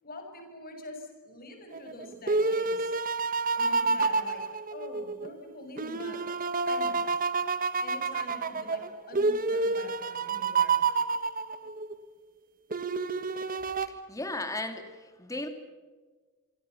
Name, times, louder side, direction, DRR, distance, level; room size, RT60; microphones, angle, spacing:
voice 1, 0.0-2.9 3.5-4.4 4.7-6.2 6.7-7.2 7.8-10.8, left 1 dB, 40° left, 4 dB, 6.5 m, -45 dB
sound 1, 1.7-5.3 5.8-11.9 12.7-13.9, right 4 dB, 40° right, 1.3 m, -29 dB
voice 2, 13.8-15.5, left 2 dB, 15° left, 6 dB, 2.7 m, -36 dB
28.0 x 24.0 x 7.1 m, 1.4 s
head